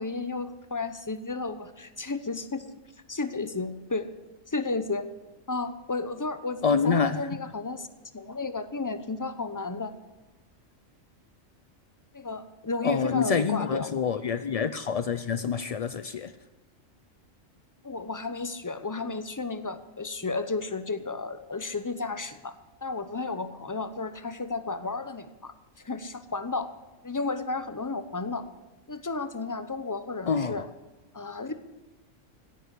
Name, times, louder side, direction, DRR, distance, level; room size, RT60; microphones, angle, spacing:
voice 1, 0.0-2.6 3.1-4.1 4.5-5.1 5.5-7.9 8.1-9.9 12.1-13.9 17.8-22.5 22.8-25.5 25.8-26.7 27.0-28.4 28.9-30.6 31.1-31.7, left 3 dB, 20° left, 11 dB, 0.7 m, -33 dB
voice 2, 6.6-7.4 12.8-16.3 30.3-30.7, left 6 dB, 65° left, 12 dB, 0.3 m, -27 dB
16.5 x 9.7 x 8.2 m, 1.1 s
omnidirectional pair, 1.3 m